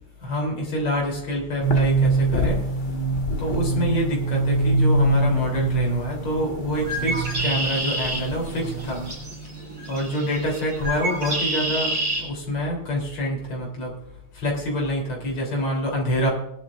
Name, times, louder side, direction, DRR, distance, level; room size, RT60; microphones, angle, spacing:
voice 1, 0.2-2.6 3.4-9.0 9.9-13.9 14.3-16.3, equal, 75° left, -1 dB, 4.4 m, -26 dB
sound 1, 1.6-9.1, right 2 dB, 25° left, 1.4 m, -24 dB
Bird, 6.7-12.2, right 1 dB, 60° right, 6.3 m, -29 dB
19.5 x 11.5 x 2.5 m, 0.81 s
omnidirectional pair, 2.4 m